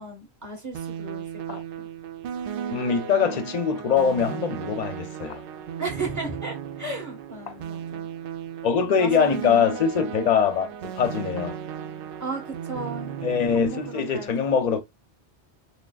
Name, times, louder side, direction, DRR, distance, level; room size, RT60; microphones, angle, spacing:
voice 1, 0.0-1.9 5.8-8.1 8.8-9.8 12.2-14.3, right 2 dB, 15° right, 1.3 m, -35 dB
sound 1, 0.7-14.2, right 8 dB, 65° right, 0.7 m, -35 dB
voice 2, 2.7-5.4 8.6-11.6 13.2-14.8, left 6 dB, 45° left, 0.6 m, -23 dB
6.0 x 2.2 x 2.3 m
omnidirectional pair, 1.1 m